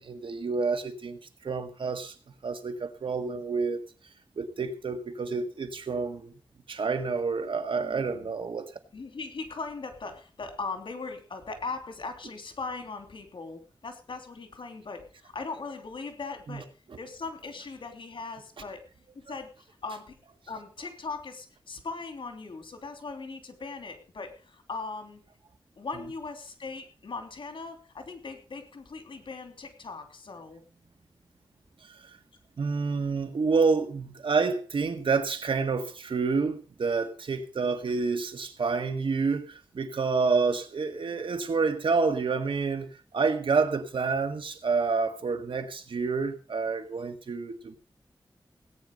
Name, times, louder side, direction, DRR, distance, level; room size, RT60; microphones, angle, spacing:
voice 1, 0.0-2.1 2.4-3.8 4.4-6.3 6.7-8.7 16.5-16.6 16.9-17.0 31.8-32.2 32.6-47.7, right 4 dB, 80° right, 1.8 m, -28 dB
voice 2, 7.8-8.3 8.9-16.7 17.0-18.8 19.3-20.1 20.5-25.2 25.8-30.6, left 4 dB, 75° left, 3.1 m, -39 dB
18.0 x 9.4 x 5.4 m
wide cardioid pair, 90°, 9 cm